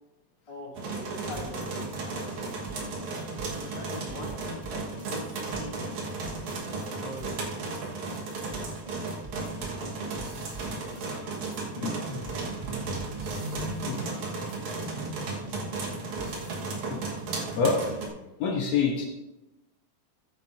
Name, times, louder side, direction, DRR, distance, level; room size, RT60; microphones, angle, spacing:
voice 1, 0.5-2.2 3.6-4.8 5.1-5.9 6.8-7.8, left 1 dB, 10° left, -4 dB, 2.1 m, -43 dB
sound 1, 0.8-18.1, right 3 dB, 85° right, 2.9 m, -34 dB
sound 2, 1.3-6.9 7.2-16.9, right 2 dB, 30° right, 0.7 m, -44 dB
voice 2, 13.9-14.3 16.9-17.0 17.6-17.8 18.4-19.1, left 5 dB, 70° left, 1 dB, 2.1 m, -27 dB
15.0 x 9.3 x 2.6 m, 1.0 s
omnidirectional pair, 3.3 m